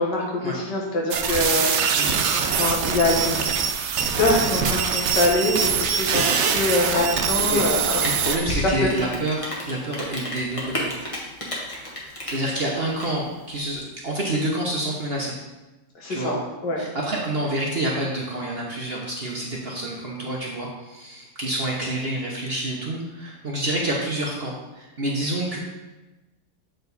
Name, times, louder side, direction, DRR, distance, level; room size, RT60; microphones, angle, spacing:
voice 1, 0.0-2.0 2.5-3.4 4.2-9.0 16.0-16.3 16.6-16.8, left 2 dB, 80° left, -2 dB, 2.1 m, -24 dB
sound 1, 1.1-8.4, right 6 dB, 70° right, 0.6 m, -23 dB
voice 2, 6.0-6.4 7.3-7.6 8.0-10.9 12.0-15.4 16.1-16.3 16.8-25.6, right 1 dB, 45° right, -2 dB, 0.9 m, -28 dB
Rain, 7.0-13.8, left 1 dB, 20° left, 1.2 m, -32 dB
7.7 x 4.5 x 4.0 m, 1.1 s
omnidirectional pair, 1.9 m